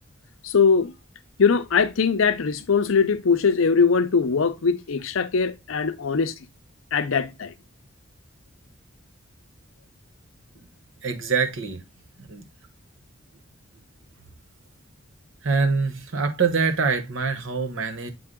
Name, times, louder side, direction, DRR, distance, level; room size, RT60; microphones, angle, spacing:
voice 1, 0.4-0.9 1.4-6.3 6.9-7.5, left 5 dB, 75° left, 0.6 m, -21 dB
voice 2, 11.0-11.8 12.2-12.4 15.4-18.1, right 5 dB, 70° right, 1.0 m, -24 dB
7.8 x 3.4 x 3.6 m
head